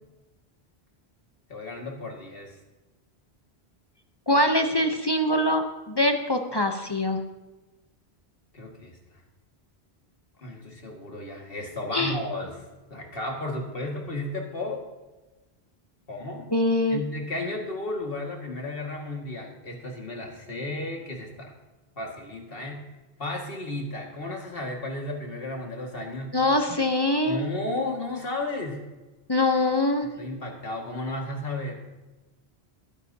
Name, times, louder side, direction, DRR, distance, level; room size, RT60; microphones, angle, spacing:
voice 1, 1.5-2.6 8.5-9.0 10.4-12.6 12.9-14.9 16.1-16.5 16.9-21.5 22.0-22.8 23.2-26.4 27.2-28.8 30.0-31.8, left 2 dB, 60° left, 1 dB, 2.2 m, -33 dB
voice 2, 4.3-7.2 11.9-12.2 16.5-17.0 26.3-27.4 29.3-30.1, left 1 dB, 25° left, 5 dB, 0.8 m, -23 dB
20.0 x 10.0 x 2.8 m, 1.1 s
omnidirectional pair, 1.1 m